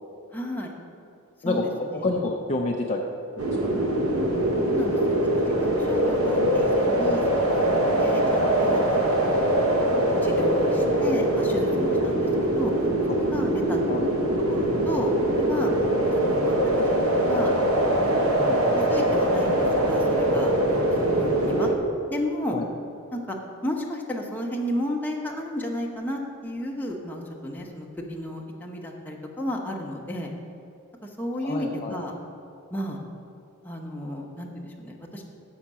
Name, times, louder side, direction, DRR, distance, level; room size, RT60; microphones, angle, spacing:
voice 1, 0.3-0.7 1.4-2.0 4.6-5.4 5.8-9.3 9.9-12.3 12.5-12.7 13.2-13.8 14.5-15.1 15.4-15.7 16.0-16.5 16.9-17.5 18.0-21.7 22.1-22.6 23.1-23.4 23.6-30.3 31.0-32.1 32.7-33.0 33.6-35.2, equal, 10° left, -1 dB, 0.9 m, -33 dB
voice 2, 2.0-3.0 3.5-3.8 13.9-14.1 22.5-22.7 31.4-32.0, left 2 dB, 30° left, 0 dB, 0.5 m, -28 dB
sound 1, 3.4-21.7, right 1 dB, 70° right, 1.0 m, -23 dB
6.6 x 5.7 x 7.3 m, 2.6 s
head